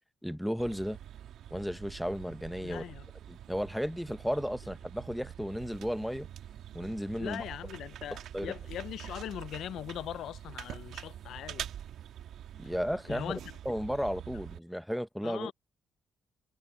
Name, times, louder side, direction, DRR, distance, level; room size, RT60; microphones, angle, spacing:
voice 1, 0.2-1.0 1.5-2.8 3.3-6.3 6.7-7.4 8.3-8.5 12.6-13.4 13.6-15.5, equal, ahead, 0.9 m, -34 dB
sound 1, 0.6-14.6, right 10 dB, 75° right, 1.6 m, -45 dB
voice 2, 2.6-3.1 7.2-11.7 13.1-13.4 15.2-15.5, left 11 dB, 70° left, 0.5 m, -40 dB
cardioid pair, 130°, 0 cm